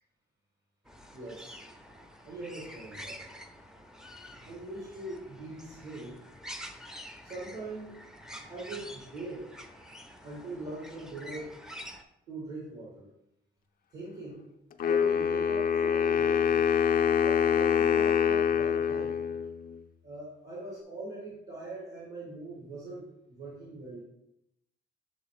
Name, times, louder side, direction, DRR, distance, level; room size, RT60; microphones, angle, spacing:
sound 1, 0.9-12.0, equal, 5° right, 0.6 m, -47 dB
voice 1, 1.1-1.7 2.2-3.3 4.4-6.2 7.2-8.0 8.5-9.5 10.2-11.6 12.3-13.1 13.9-14.4 14.8-16.6 17.2-19.2 20.0-24.0, right 2 dB, 60° right, -5 dB, 2.4 m, -42 dB
Wind instrument woodwind instrument, 14.8-19.8, left 7 dB, 45° left, 0.5 m, -25 dB
7.0 x 3.4 x 4.8 m, 0.85 s
cardioid pair, 90°, 20 cm